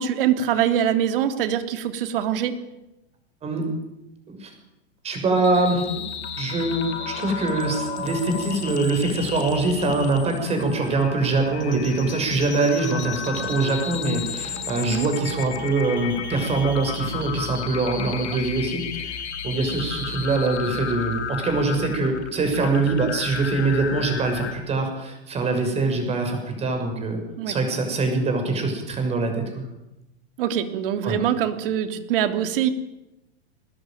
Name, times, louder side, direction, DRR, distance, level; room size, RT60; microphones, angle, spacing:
voice 1, 0.0-2.5 14.9-15.1 27.4-27.5 30.4-32.7, right 9 dB, 55° right, 8 dB, 3.2 m, -23 dB
voice 2, 5.0-5.8 6.4-27.2 27.5-29.6 31.0-31.2, right 3 dB, 20° right, 4 dB, 6.6 m, -24 dB
sound 1, 5.4-24.5, left 6 dB, 85° left, 6.8 m, -33 dB
21.0 x 20.0 x 9.3 m, 0.93 s
supercardioid pair, 155°, 33 cm